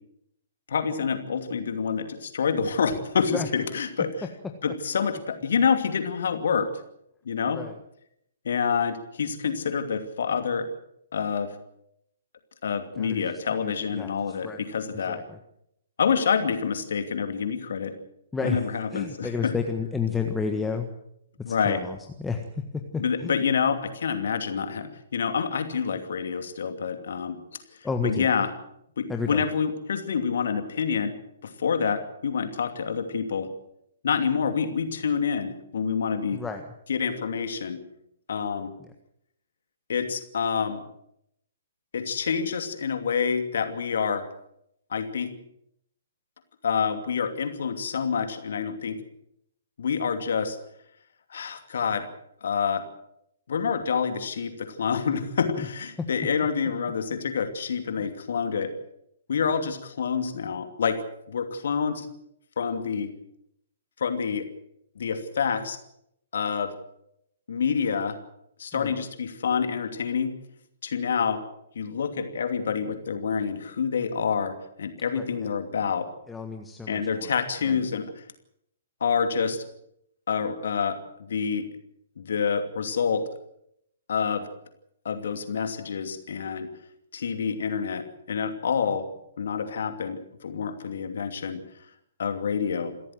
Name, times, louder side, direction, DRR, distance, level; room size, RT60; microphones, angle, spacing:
voice 1, 0.7-4.1 4.6-6.7 7.3-7.6 8.4-10.7 11.1-11.6 12.6-15.2 16.0-17.9 18.4-19.5 21.4-21.8 23.0-27.4 28.0-28.5 29.0-31.1 31.4-33.5 34.0-36.4 36.9-37.8 38.3-38.7 39.9-40.8 41.9-44.3 44.9-45.3 46.6-49.0 49.8-50.6 51.3-52.1 52.4-52.9 53.5-58.7 59.3-61.0 61.3-62.1 62.6-63.1 64.0-64.5 65.0-65.8 66.3-66.7 67.5-68.2 68.6-70.3 70.8-71.4 71.7-76.1 76.9-78.2 79.0-79.6 80.3-81.7 82.2-83.3 84.1-84.5 85.0-86.7 87.1-89.1 89.4-91.6 92.2-92.9, left 6 dB, 55° left, 7 dB, 2.7 m, -27 dB
voice 2, 12.9-14.6 15.1-15.4 18.3-18.7 18.9-20.9 21.5-23.4 27.8-28.3 29.1-29.4 36.3-36.6 38.8-38.9 56.0-56.1 58.0-58.1 68.7-69.0 75.1-75.3 76.3-77.3 77.6-77.8, left 5 dB, 10° left, 4 dB, 1.6 m, -31 dB
28.0 x 14.0 x 7.7 m, 0.77 s
figure-of-eight pair, 125°, 0 cm